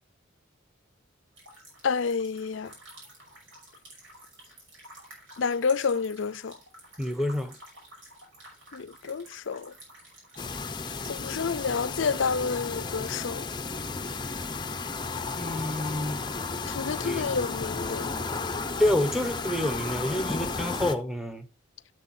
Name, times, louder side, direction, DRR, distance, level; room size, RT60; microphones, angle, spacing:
sound 1, 1.4-12.4, right 1 dB, 75° right, 5.9 m, -51 dB
voice 1, 1.8-2.7 5.4-6.5 8.7-9.7 11.1-13.5 16.7-18.1, left 5 dB, 70° left, 0.5 m, -29 dB
voice 2, 7.0-7.6 15.4-16.2 16.9-17.2 18.8-21.4, left 1 dB, ahead, 1.0 m, -28 dB
sound 2, 10.4-21.0, left 4 dB, 20° left, 0.6 m, -33 dB
13.0 x 6.9 x 2.7 m
head